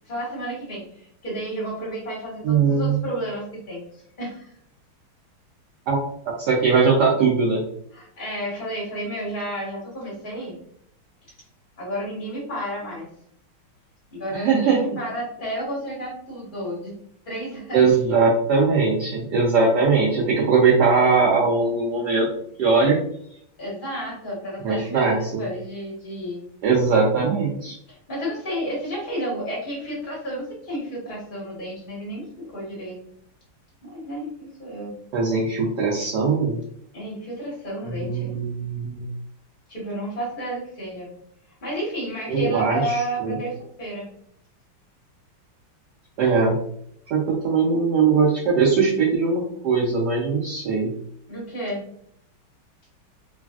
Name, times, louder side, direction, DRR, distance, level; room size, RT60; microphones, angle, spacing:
voice 1, 0.0-4.5 7.9-10.6 11.8-13.1 14.1-16.9 17.3-17.8 23.6-26.4 27.9-33.0 33.8-34.9 36.9-38.4 39.7-41.1 41.6-44.1 51.3-51.8, right 1 dB, 35° left, -5 dB, 0.9 m, -31 dB
voice 2, 2.4-3.0 5.9-6.0 6.4-7.6 14.3-14.8 17.7-22.3 22.6-23.0 24.6-25.4 26.6-27.7 35.1-36.6 37.9-39.1 42.3-43.3 46.2-46.6 47.1-50.9, right 4 dB, 75° right, -3 dB, 0.9 m, -20 dB
3.2 x 2.4 x 2.3 m, 0.67 s
omnidirectional pair, 2.3 m